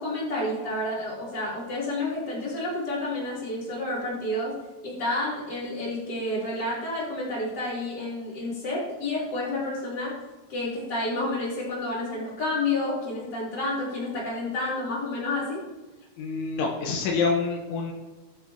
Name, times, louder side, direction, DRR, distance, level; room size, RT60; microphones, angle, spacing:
voice 1, 0.0-4.6 4.8-10.1 10.5-15.6, left 2 dB, 25° left, -7 dB, 3.5 m, -30 dB
voice 2, 16.2-17.9, left 4 dB, 80° left, 1 dB, 3.5 m, -27 dB
21.0 x 7.6 x 2.9 m, 1.1 s
omnidirectional pair, 5.6 m